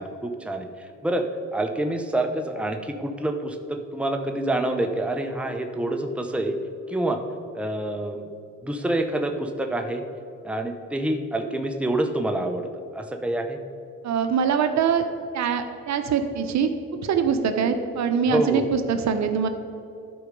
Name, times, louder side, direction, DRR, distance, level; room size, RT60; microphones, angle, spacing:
voice 1, 0.0-6.6 6.9-7.2 7.5-8.2 8.6-10.0 10.4-13.6 18.3-18.6, right 1 dB, 5° right, 5 dB, 0.8 m, -27 dB
voice 2, 14.0-15.1 15.3-16.7 17.0-19.5, right 7 dB, 65° right, 8 dB, 0.8 m, -23 dB
11.5 x 4.7 x 5.2 m, 2.6 s
cardioid pair, 90°, 30 cm